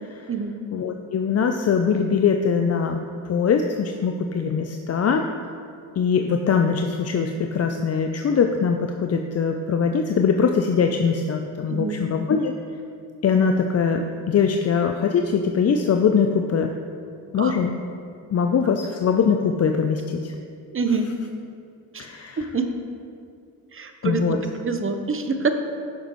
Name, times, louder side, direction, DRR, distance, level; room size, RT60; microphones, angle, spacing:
voice 1, 0.7-5.3 6.0-12.5 13.2-16.7 17.3-17.8 18.3-20.3 22.0-22.5 24.0-24.4, left 6 dB, 35° left, 5 dB, 0.5 m, -22 dB
voice 2, 11.7-12.0 17.4-17.5 20.7-21.1 21.9-22.0 22.4-22.7 23.7-25.5, right 4 dB, 30° right, 6 dB, 0.9 m, -26 dB
10.5 x 6.5 x 3.1 m, 2.4 s
supercardioid pair, 55°, 45 cm